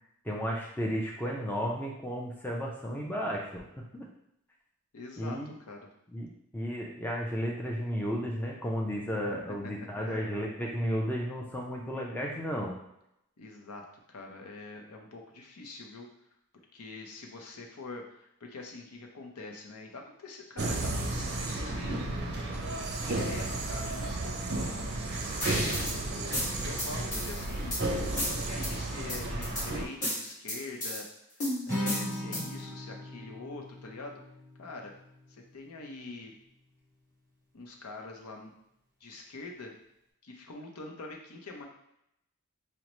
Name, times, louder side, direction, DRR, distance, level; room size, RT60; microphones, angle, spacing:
voice 1, 0.2-4.1 5.2-5.5 6.1-12.8, equal, 10° left, -2 dB, 0.4 m, -33 dB
voice 2, 4.9-5.8 9.5-9.7 10.0-10.2 13.4-16.1 16.7-22.0 23.0-24.8 25.6-31.1 31.4-34.2 34.6-34.9 35.3-36.3 37.5-38.5 39.0-39.7 40.2-41.6, left 3 dB, 80° left, 1 dB, 0.6 m, -44 dB
sound 1, 20.6-29.9, right 2 dB, 45° right, 0.5 m, -33 dB
sound 2, 25.4-26.0 26.3-27.8 28.2-28.7 29.1-29.7 30.0-31.0 31.4-32.6, left 1 dB, 35° left, 1.4 m, -33 dB
Acoustic guitar, 31.7-35.9, equal, 10° right, 0.9 m, -39 dB
5.1 x 2.1 x 3.0 m, 0.80 s
head